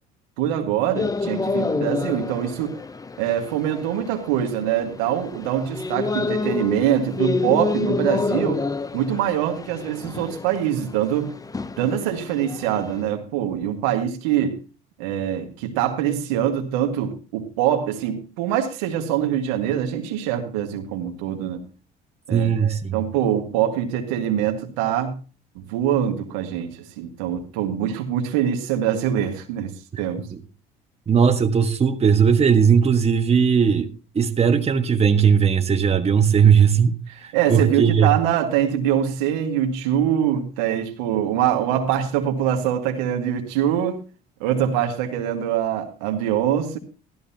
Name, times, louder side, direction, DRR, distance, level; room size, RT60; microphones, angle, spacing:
voice 1, 0.4-2.8 3.2-8.6 8.9-11.3 11.8-14.6 15.0-21.6 22.3-25.2 25.6-29.7 30.0-30.3 37.1-44.0 44.4-46.8, right 10 dB, 90° right, 1.8 m, -24 dB
sound 1, 0.9-13.0, left 3 dB, 20° left, 0.7 m, -29 dB
voice 2, 22.3-23.0 29.9-30.0 31.1-33.9 34.1-37.0 37.2-38.1, right 7 dB, 30° right, 1.6 m, -18 dB
14.5 x 13.0 x 2.9 m
supercardioid pair, 75°, 19 cm